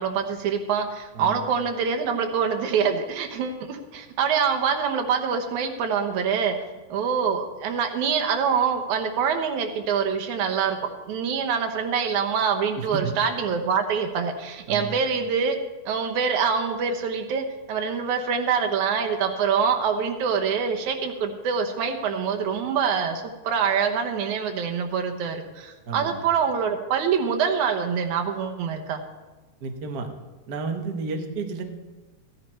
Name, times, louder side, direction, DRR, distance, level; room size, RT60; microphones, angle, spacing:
voice 1, 0.0-6.6 6.9-10.8 11.1-15.6 15.9-29.0, right 6 dB, 70° right, 5 dB, 2.4 m, -25 dB
voice 2, 12.7-13.1 14.7-15.0 25.9-26.2 29.6-30.1 30.5-31.6, right 4 dB, 85° right, 4 dB, 0.8 m, -31 dB
14.5 x 10.5 x 4.4 m, 1.2 s
omnidirectional pair, 3.7 m